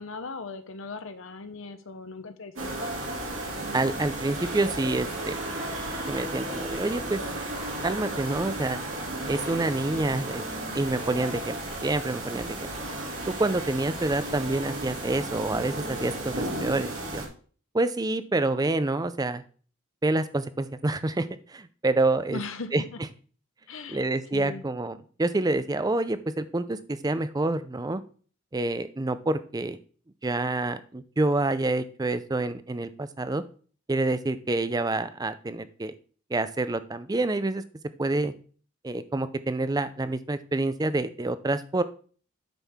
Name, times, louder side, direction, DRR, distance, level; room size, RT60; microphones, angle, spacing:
voice 1, 0.0-2.9 22.3-23.0 23.7-24.0 24.3-24.6, left 3 dB, 65° left, 9 dB, 0.9 m, -38 dB
sound 1, 2.6-17.3, right 1 dB, 65° right, 2.7 m, -34 dB
voice 2, 3.7-5.4 6.1-7.2 7.8-8.8 9.3-10.4 10.7-12.7 13.4-17.2 17.7-19.4 20.0-22.4 22.7-22.8 23.9-28.0 28.5-29.8 30.2-33.4 33.9-35.9 36.3-37.6 38.0-38.3 38.8-41.8, right 2 dB, 15° right, 13 dB, 0.4 m, -27 dB
9.1 x 6.3 x 3.5 m, 0.42 s
head